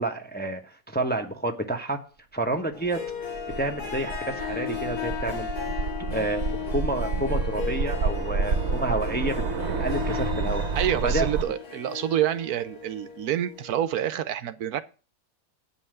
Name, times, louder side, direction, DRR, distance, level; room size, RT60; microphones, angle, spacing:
voice 1, 0.0-2.0 2.3-3.0 3.6-5.5 6.1-9.3 9.8-10.6 11.0-11.3, right 2 dB, 5° left, 1.0 m, -29 dB
Harp, 2.7-14.0, left 8 dB, 70° left, 2.7 m, -36 dB
sound 1, 3.1-11.4, right 4 dB, 50° right, 1.2 m, -29 dB
voice 2, 10.7-14.8, right 11 dB, 70° right, 1.1 m, -27 dB
8.6 x 5.6 x 7.7 m
omnidirectional pair, 1.7 m